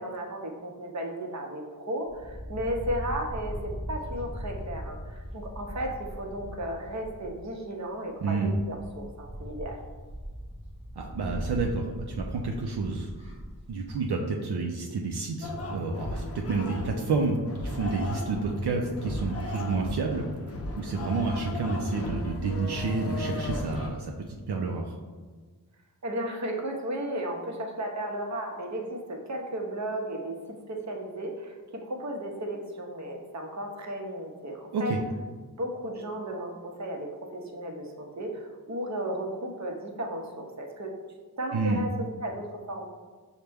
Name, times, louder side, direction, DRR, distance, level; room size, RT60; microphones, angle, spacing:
voice 1, 0.0-9.8 26.0-30.3 30.7-31.5 31.8-34.9 35.6-40.9 41.4-41.9 42.2-42.8, right 1 dB, 45° right, 1 dB, 0.7 m, -34 dB
sound 1, 2.1-7.6 8.2-8.3 8.5-14.0, equal, 15° right, 0.9 m, -39 dB
voice 2, 8.2-8.5 11.0-13.1 13.7-20.2 20.8-25.0 34.7-35.0 41.5-41.8, right 3 dB, 75° right, 1 dB, 0.5 m, -29 dB
sound 2, 15.4-23.9, left 2 dB, 35° left, 0.5 m, -35 dB
5.7 x 2.2 x 3.3 m, 1.4 s
wide cardioid pair, 60°, 40 cm